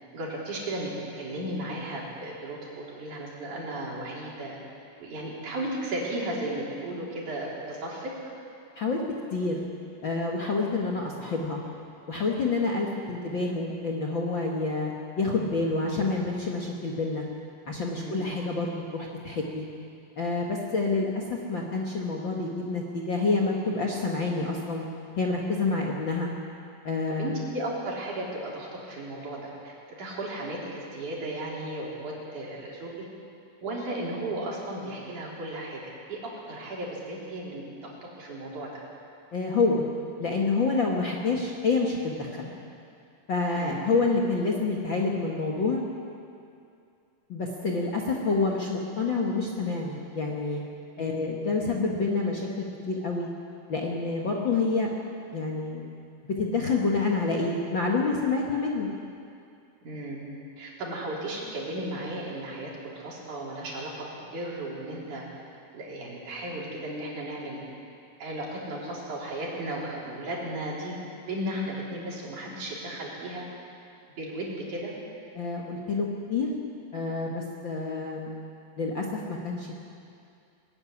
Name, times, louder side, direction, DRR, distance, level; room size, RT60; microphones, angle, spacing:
voice 1, 0.1-4.6 5.0-8.1 17.9-18.2 27.2-32.9 33.6-38.8 43.6-43.9 51.0-51.2 59.8-60.3 60.6-65.3 65.7-67.6 68.2-73.4 74.2-74.9, right 1 dB, 60° right, -4 dB, 5.2 m, -35 dB
voice 2, 10.0-11.6 12.1-17.3 17.7-19.7 20.2-24.9 25.2-26.3 26.8-27.3 39.3-39.8 40.2-42.5 43.3-45.8 47.3-50.6 51.0-53.3 53.7-54.9 55.3-55.9 56.2-58.9 75.4-76.5 76.9-78.3 78.8-79.7, left 3 dB, 45° left, -1 dB, 1.7 m, -28 dB
20.0 x 14.5 x 9.8 m, 2.5 s
omnidirectional pair, 3.9 m